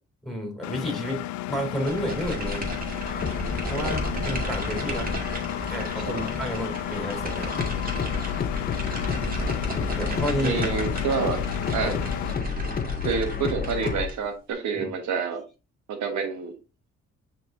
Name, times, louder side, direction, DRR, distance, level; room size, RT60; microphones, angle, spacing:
voice 1, 0.2-2.7 3.7-5.1 5.7-7.5 10.0-10.6 11.8-12.0 14.8-14.9, equal, ahead, 0 dB, 3.7 m, -31 dB
Engine, 0.6-12.3, left 15 dB, 70° left, 0.4 m, -34 dB
sound 1, 1.9-14.2, right 1 dB, 30° right, 2.1 m, -34 dB
sound 2, 3.0-14.1, left 6 dB, 30° left, 0.7 m, -31 dB
voice 2, 10.4-11.4 11.7-11.9 13.0-15.4 15.9-16.5, right 6 dB, 70° right, 5 dB, 1.4 m, -28 dB
9.1 x 4.1 x 2.7 m, 0.29 s
cardioid pair, 90°, 30 cm